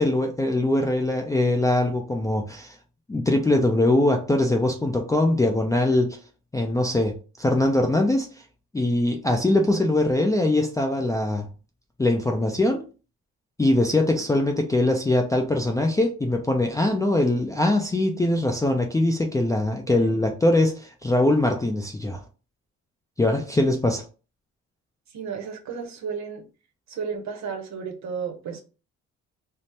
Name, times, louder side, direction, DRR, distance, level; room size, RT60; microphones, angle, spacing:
voice 1, 0.0-2.8 3.1-6.2 6.5-8.3 8.7-11.5 12.0-12.8 13.6-22.2 23.2-24.0, left 1 dB, 10° left, 0.4 m, -22 dB
voice 2, 25.1-26.4 26.9-28.6, right 6 dB, 65° right, 0.7 m, -33 dB
2.7 x 2.0 x 3.2 m
cardioid pair, 90°, 30 cm